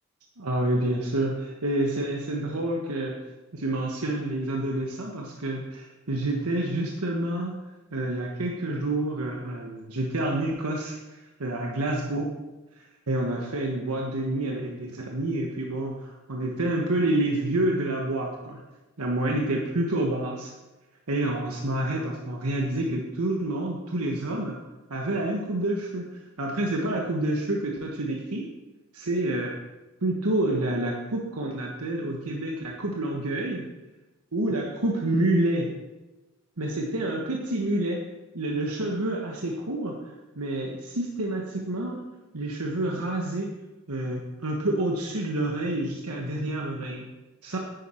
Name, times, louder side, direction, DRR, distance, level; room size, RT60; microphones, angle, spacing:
voice 1, 0.4-3.2 3.5-7.6 7.9-12.3 13.1-18.6 19.0-20.5 21.1-24.6 24.9-26.1 26.4-28.5 28.9-29.5 30.0-33.7 34.3-35.7 36.6-38.1 38.3-40.0 40.3-42.0 42.3-43.5 43.9-47.1 47.4-47.6, right 1 dB, 85° right, 0 dB, 1.3 m, -28 dB
10.5 x 9.2 x 4.5 m, 1.1 s
head